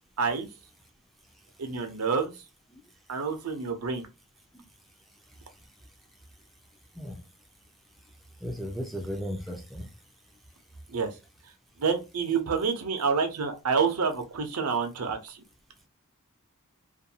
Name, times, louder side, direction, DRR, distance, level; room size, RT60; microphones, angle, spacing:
voice 1, 0.2-0.5 1.6-2.3 3.1-4.1 10.9-11.1 11.8-15.4, right 5 dB, 75° right, 0.6 m, -28 dB
voice 2, 8.4-9.9, equal, ahead, 0.4 m, -35 dB
2.5 x 2.3 x 2.7 m
head